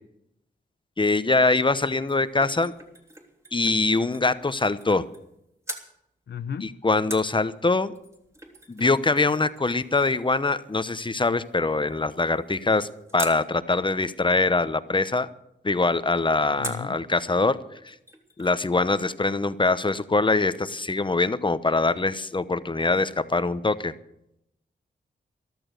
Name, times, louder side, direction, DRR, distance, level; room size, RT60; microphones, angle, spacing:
voice 1, 1.0-2.7 3.5-5.0 6.6-7.9 8.7-15.3 15.6-17.6 17.8-17.9 18.4-23.9, left 3 dB, 25° left, 13 dB, 0.9 m, -23 dB
sound 1, 1.7-5.4 5.6-5.9 7.1-13.4 16.6-17.0 17.4-17.5 17.8-18.8 19.0-19.1, right 1 dB, 15° right, 3.1 m, -43 dB
voice 2, 6.3-6.7 16.6-17.0, left 7 dB, 65° left, 12 dB, 0.8 m, -34 dB
14.0 x 12.5 x 6.6 m, 0.80 s
cardioid pair, 60°, 19 cm